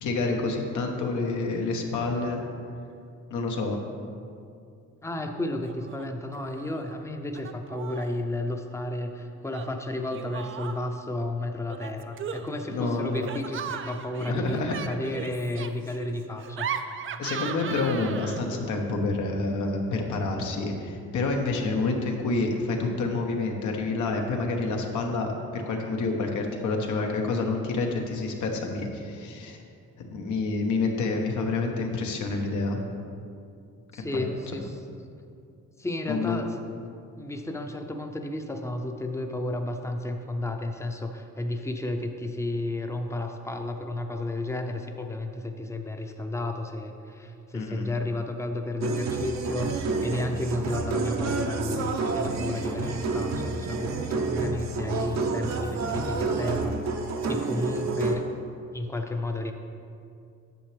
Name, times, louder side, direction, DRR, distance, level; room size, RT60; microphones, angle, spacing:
voice 1, 0.0-2.4 3.3-3.8 12.7-13.3 14.2-14.7 17.2-29.6 30.0-32.8 34.1-34.2 36.1-36.4 47.5-47.9, left 3 dB, 75° left, 2 dB, 1.1 m, -28 dB
voice 2, 5.0-16.7 33.9-34.8 35.8-36.5 37.2-56.8 57.3-58.2 58.7-59.5, left 1 dB, 10° left, 4 dB, 0.6 m, -32 dB
Laughter, 5.6-6.1 6.3-7.0 7.4-8.2 9.5-11.0 11.7-18.6, right 7 dB, 45° right, 0.4 m, -38 dB
sound 1, 48.8-58.2, right 4 dB, 60° right, 0.8 m, -29 dB
9.1 x 6.7 x 3.4 m, 2.4 s
cardioid pair, 90°, 30 cm